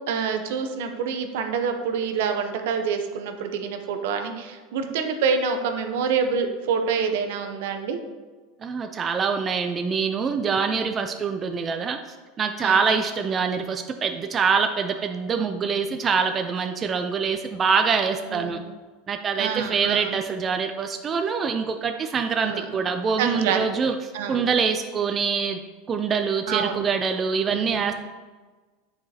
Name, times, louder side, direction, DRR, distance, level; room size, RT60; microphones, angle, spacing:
voice 1, 0.1-8.0 10.7-10.9 12.6-12.8 18.3-18.6 19.4-20.2 22.4-22.6 23.2-23.6 24.1-24.5 26.5-26.8 27.5-27.8, right 6 dB, 70° right, 6 dB, 0.7 m, -27 dB
voice 2, 8.6-18.6 19.1-25.6 25.9-27.9, right 5 dB, 30° right, 6 dB, 0.4 m, -25 dB
7.0 x 4.9 x 2.8 m, 1.3 s
hypercardioid pair, 95°, 0 cm